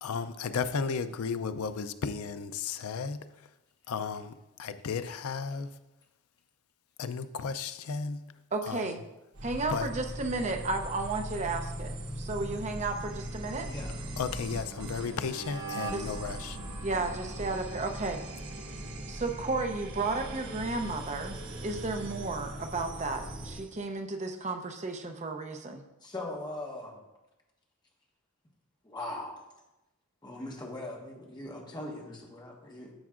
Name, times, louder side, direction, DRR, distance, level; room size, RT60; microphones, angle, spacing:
voice 1, 0.0-3.2 3.9-5.7 7.0-8.2 8.6-9.0 9.7-9.9 14.2-16.6, left 5 dB, 80° left, 0.4 m, -34 dB
voice 2, 8.5-9.0 9.4-13.7 15.9-16.1 16.8-18.2 19.1-21.4 21.6-25.8, right 3 dB, 30° right, 0.6 m, -33 dB
sound 1, 9.3-23.7, right 1 dB, 90° right, 1.1 m, -39 dB
voice 3, 13.6-14.0 26.0-27.0 28.8-29.4 30.2-32.9, left 1 dB, 20° left, 1.2 m, -40 dB
10.0 x 7.1 x 2.5 m
head